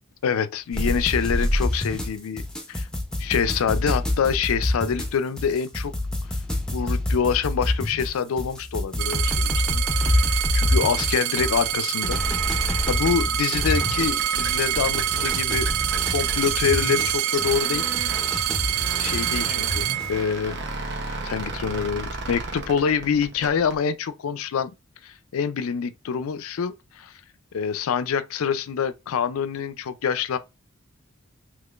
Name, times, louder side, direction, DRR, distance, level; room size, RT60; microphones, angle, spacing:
voice 1, 0.2-2.4 2.7-2.9 3.2-5.9 6.7-12.2 12.6-15.7 16.1-17.8 19.0-20.6 21.1-24.7 25.0-27.1 27.5-30.4, left 7 dB, 80° left, 0.4 m, -26 dB
sound 1, 0.7-20.1, left 1 dB, 5° left, 0.6 m, -27 dB
sound 2, 9.0-20.7 21.4-22.0, right 12 dB, 75° right, 0.4 m, -26 dB
sound 3, 14.1-23.8, right 3 dB, 55° right, 0.8 m, -35 dB
3.6 x 2.9 x 2.4 m
head